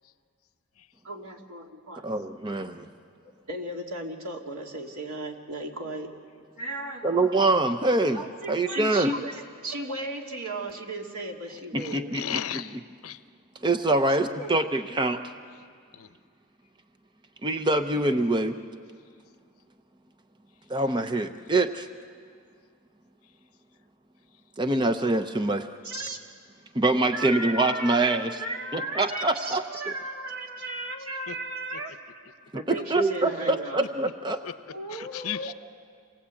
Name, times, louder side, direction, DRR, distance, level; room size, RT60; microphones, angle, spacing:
voice 1, 1.0-2.0 3.5-6.1 6.6-7.4 8.1-12.1 14.4-14.5 17.9-18.6 25.8-26.2 27.1-31.9 32.5-33.8 34.7-35.5, right 2 dB, 80° right, 1 dB, 2.7 m, -36 dB
voice 2, 2.0-2.9 7.0-8.2 8.5-9.1 11.7-12.2 13.6-15.2 17.4-18.5 20.7-21.9 24.6-25.6 26.7-28.3 28.7-29.6 32.9-34.4, right 2 dB, 20° right, 8 dB, 0.7 m, -24 dB
voice 3, 11.8-13.2 15.9-16.1 31.3-31.4 33.8-33.9 34.4-34.5 34.9-35.5, left 9 dB, 80° left, 12 dB, 0.8 m, -35 dB
28.0 x 20.0 x 8.4 m, 2.1 s
head